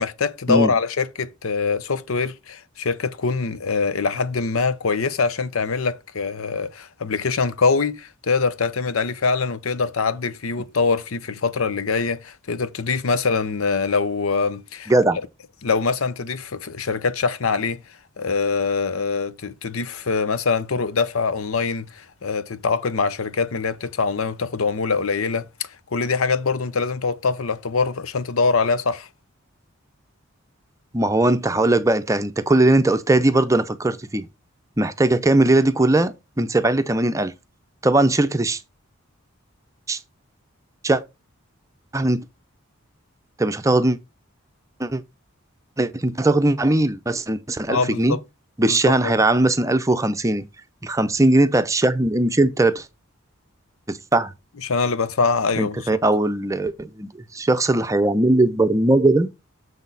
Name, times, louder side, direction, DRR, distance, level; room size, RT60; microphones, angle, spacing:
voice 1, 0.0-14.9 15.6-17.8 18.2-29.1 47.7-48.2 48.7-49.1 54.6-56.0, left 4 dB, 75° left, 0.7 m, -23 dB
voice 2, 14.9-15.2 30.9-34.3 34.8-37.3 37.8-38.6 39.9-40.0 40.8-41.0 41.9-42.2 43.4-44.0 44.8-45.0 45.8-48.2 48.6-50.4 50.8-52.9 53.9-54.3 55.6-59.3, right 2 dB, 15° right, 0.6 m, -19 dB
7.1 x 6.2 x 4.0 m
head